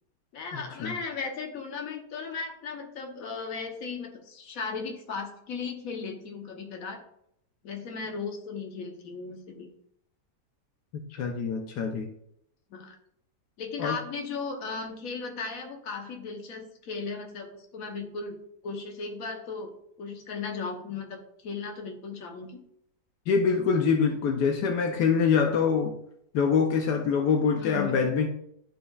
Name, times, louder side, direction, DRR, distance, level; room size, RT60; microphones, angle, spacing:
voice 1, 0.3-7.0 7.6-9.7 12.7-13.0 13.6-18.4 18.6-22.6 27.5-28.0, left 4 dB, 60° left, 3 dB, 1.4 m, -36 dB
voice 2, 10.9-12.1 13.8-14.0 23.3-25.9 26.3-28.3, left 6 dB, 80° left, 4 dB, 1.3 m, -25 dB
11.5 x 4.6 x 2.4 m, 0.71 s
omnidirectional pair, 1.7 m